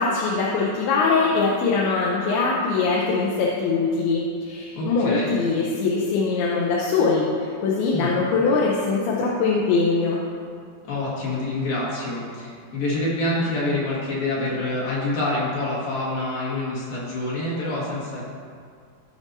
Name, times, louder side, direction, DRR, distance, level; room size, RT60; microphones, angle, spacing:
voice 1, 0.0-10.2, left 4 dB, 85° left, -4 dB, 2.8 m, -22 dB
voice 2, 4.7-5.3 7.9-8.1 10.8-18.3, left 2 dB, 70° left, -7 dB, 3.6 m, -26 dB
16.0 x 5.4 x 2.7 m, 2.2 s
omnidirectional pair, 4.4 m